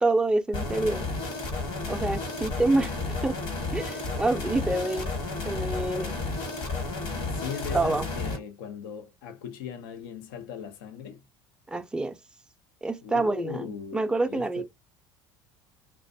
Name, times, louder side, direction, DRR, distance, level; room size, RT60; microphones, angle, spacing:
voice 1, 0.0-1.0 1.9-2.9 3.2-3.4 3.7-5.1 5.5-6.2 7.7-8.1 11.7-12.2 12.8-14.6, right 2 dB, 10° right, 0.3 m, -27 dB
sound 1, 0.5-8.4, left 3 dB, 65° left, 1.1 m, -32 dB
voice 2, 7.1-11.2 13.0-14.6, left 8 dB, 90° left, 0.5 m, -39 dB
2.5 x 2.1 x 2.5 m
supercardioid pair, 90°, 11 cm